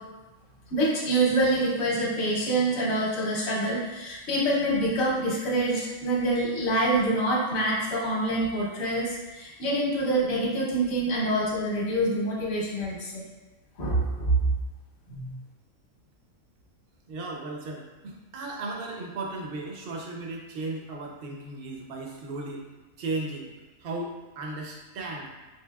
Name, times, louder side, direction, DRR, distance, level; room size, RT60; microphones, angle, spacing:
voice 1, 0.7-13.2 13.8-14.3 15.1-15.3, right 1 dB, 55° left, -4 dB, 1.0 m, -26 dB
voice 2, 17.1-22.7 23.0-23.5 23.8-25.3, right 2 dB, 70° right, 0 dB, 0.5 m, -35 dB
4.5 x 2.7 x 2.3 m, 1.2 s
omnidirectional pair, 1.5 m